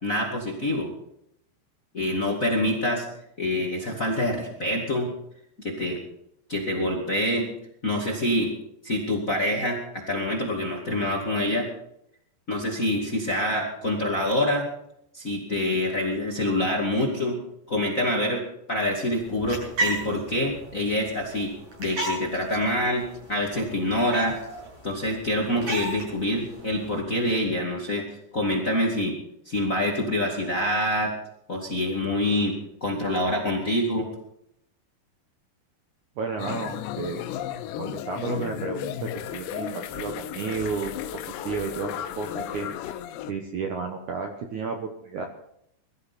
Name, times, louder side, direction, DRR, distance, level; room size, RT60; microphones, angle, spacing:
voice 1, 0.0-0.9 1.9-3.0 3.4-5.1 5.6-6.0 6.5-7.5 7.8-8.5 8.8-11.7 12.5-14.6 15.1-17.4 17.7-18.4 18.7-21.5 21.8-24.4 24.8-28.0 28.3-29.2 29.4-31.1 31.5-34.1, left 1 dB, 30° left, 0 dB, 1.6 m, -26 dB
sound 1, 19.2-27.0, right 1 dB, 45° right, 9.0 m, -35 dB
voice 2, 36.2-37.3 37.8-43.0 43.3-45.3, right 5 dB, 65° right, 4 dB, 2.0 m, -32 dB
sound 2, 36.4-43.3, left 11 dB, 85° left, 3.0 m, -34 dB
22.0 x 14.0 x 4.2 m, 0.76 s
omnidirectional pair, 4.9 m